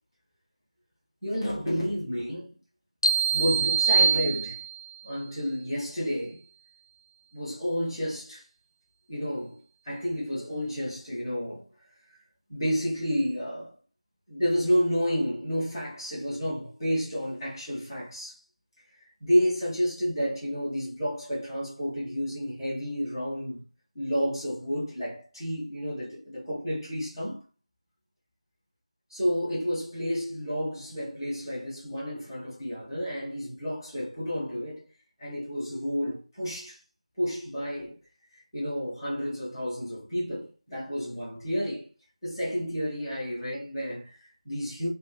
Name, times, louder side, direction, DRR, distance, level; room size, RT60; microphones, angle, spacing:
voice 1, 1.2-2.5 3.3-4.6 5.0-6.4 7.3-8.4 9.1-11.7 12.5-13.7 14.3-18.4 19.2-23.6 23.9-27.4 29.1-34.8 35.2-36.8 37.2-38.0 38.3-41.9 42.2-44.9, equal, ahead, 0.7 m, -30 dB
sound 1, 3.0-5.0, right 5 dB, 35° left, 0.3 m, -24 dB
2.4 x 2.4 x 3.3 m
figure-of-eight pair, 170°, 4 cm